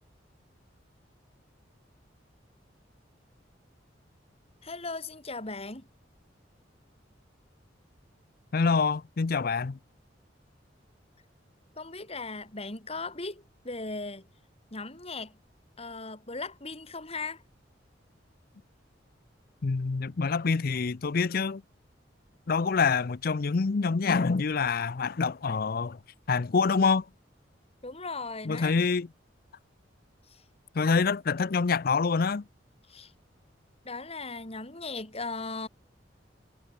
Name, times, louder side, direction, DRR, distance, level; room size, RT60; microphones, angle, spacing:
voice 1, 4.6-5.9 11.8-14.3 14.7-15.4 15.8-17.4 27.8-28.8 30.3-30.4 32.9-33.1 33.8-35.7, left 3 dB, 35° left, 5.6 m, -38 dB
voice 2, 8.5-9.8 19.6-21.6 22.5-26.0 26.3-27.1 28.4-29.1 30.7-32.5, left 4 dB, 55° left, 0.5 m, -26 dB
head